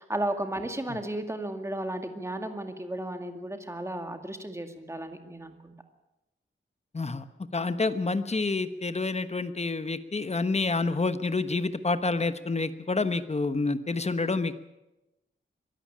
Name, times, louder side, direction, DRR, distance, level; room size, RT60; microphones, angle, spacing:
voice 1, 0.0-5.7, right 1 dB, 15° right, 6 dB, 2.1 m, -34 dB
voice 2, 6.9-7.2 7.5-14.5, left 3 dB, 30° left, 11 dB, 1.1 m, -28 dB
23.5 x 13.0 x 8.7 m, 0.97 s
wide cardioid pair, 115°, 21 cm